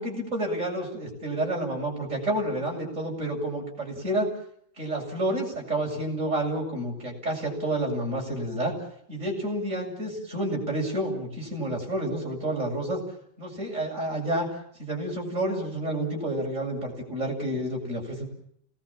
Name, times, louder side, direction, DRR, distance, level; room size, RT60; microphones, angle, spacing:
voice 1, 0.0-4.3 4.8-8.7 9.1-13.0 13.4-14.5 14.8-18.3, right 1 dB, 40° right, 0 dB, 8.1 m, -29 dB
28.5 x 20.0 x 7.3 m, 0.70 s
omnidirectional pair, 2.1 m